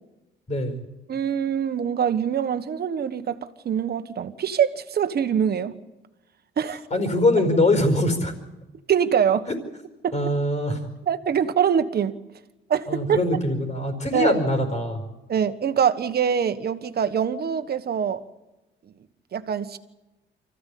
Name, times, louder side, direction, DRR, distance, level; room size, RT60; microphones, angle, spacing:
voice 1, 0.5-0.8 6.9-8.3 10.1-10.8 12.9-15.0, left 1 dB, 35° left, 7 dB, 4.9 m, -22 dB
voice 2, 1.1-3.4 3.6-5.7 6.6-6.8 8.9-9.5 10.0-10.1 11.1-12.1 12.7-13.2 14.1-14.4 15.3-18.2 19.3-19.8, right 8 dB, 55° right, 10 dB, 1.4 m, -24 dB
24.5 x 15.5 x 8.6 m, 1.0 s
cardioid pair, 90°, 20 cm